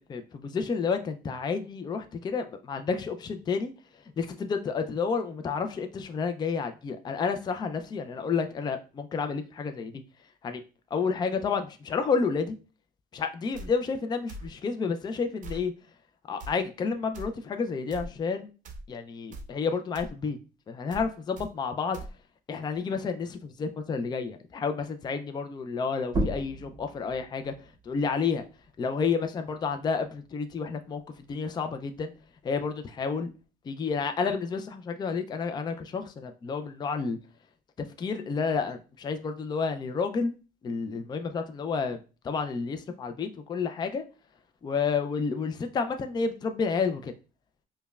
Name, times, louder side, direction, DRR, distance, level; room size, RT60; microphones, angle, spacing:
voice 1, 0.1-10.0 10.4-10.6 10.9-12.6 13.1-15.7 16.3-18.5 18.9-20.4 20.7-22.0 22.5-28.4 28.8-32.1 32.4-33.3 33.6-37.2 37.8-40.4 40.6-42.0 42.2-44.0 44.6-47.1, left 5 dB, 25° left, 0.4 m, -30 dB
sound 1, 13.5-13.7 14.3-14.5 15.4-15.6 16.4-16.5 17.1-17.3 17.9-18.1 18.6-18.9 19.3-19.5 19.9-20.1 20.9-21.1 21.4-21.5 21.9-22.1, right 2 dB, 50° right, 0.6 m, -40 dB
sound 2, 26.0-31.3 31.7-33.4, right 1 dB, 25° right, 0.9 m, -37 dB
5.1 x 2.2 x 2.3 m
cardioid pair, 110°, 17 cm